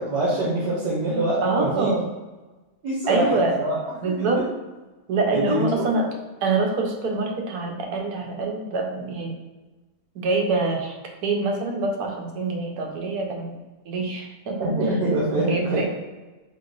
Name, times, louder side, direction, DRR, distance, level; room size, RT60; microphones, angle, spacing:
voice 1, 0.0-1.9 2.8-3.8 4.2-4.5 5.3-6.0 6.5-6.7 14.6-15.8, right 1 dB, 90° right, -6 dB, 1.6 m, -25 dB
voice 2, 1.4-2.0 3.1-3.5 4.0-4.4 5.1-6.1 6.4-9.3 10.1-10.9 11.2-13.5 13.9-14.7 15.1-15.8, right 3 dB, 70° right, 2 dB, 1.2 m, -25 dB
3.7 x 2.9 x 3.9 m, 1.2 s
omnidirectional pair, 1.8 m